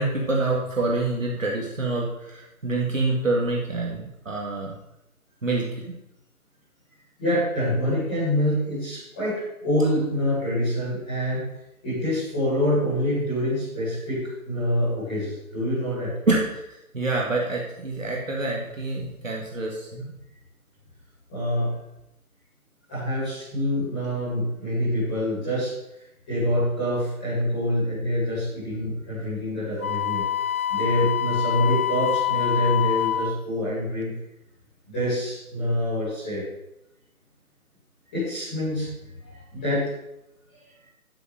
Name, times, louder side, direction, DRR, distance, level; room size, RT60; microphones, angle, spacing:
voice 1, 0.0-4.7 5.4-5.6 16.3-16.4 16.9-20.1, right 2 dB, 60° right, -2 dB, 2.2 m, -26 dB
voice 2, 7.2-11.4 11.8-16.1 21.3-21.7 22.9-25.7 26.3-30.2 30.7-34.1 34.9-36.4 38.1-38.9 39.2-39.9, equal, 5° left, -14 dB, 2.7 m, -26 dB
Wind instrument woodwind instrument, 29.8-33.4, left 11 dB, 70° left, 0.8 m, -25 dB
11.5 x 5.1 x 6.5 m, 0.87 s
figure-of-eight pair, 175°, 45 cm